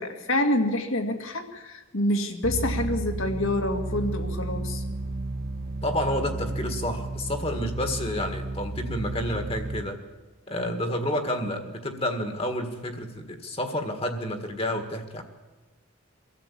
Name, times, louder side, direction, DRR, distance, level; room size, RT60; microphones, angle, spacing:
voice 1, 0.0-4.8, left 1 dB, 65° left, 5 dB, 2.0 m, -27 dB
sound 1, 2.4-9.8, right 2 dB, 45° right, 1.1 m, -32 dB
voice 2, 5.8-10.0 10.5-15.2, left 1 dB, 25° left, 6 dB, 1.7 m, -30 dB
23.5 x 13.5 x 8.5 m, 1.2 s
head